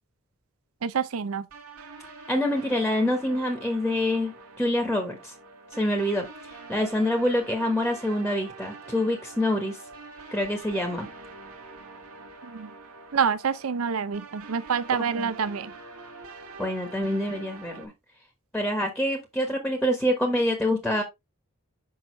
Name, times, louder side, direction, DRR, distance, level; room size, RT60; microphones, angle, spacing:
voice 1, 0.8-1.5 12.4-12.7 13.1-15.7, right 6 dB, 75° right, 0.5 m, -27 dB
sound 1, 1.5-17.9, right 3 dB, 90° right, 1.7 m, -45 dB
voice 2, 2.3-5.3 5.7-9.8 10.3-11.1 15.2-15.3 16.6-17.9 18.5-21.0, left 1 dB, ahead, 1.2 m, -26 dB
6.4 x 5.5 x 3.2 m
head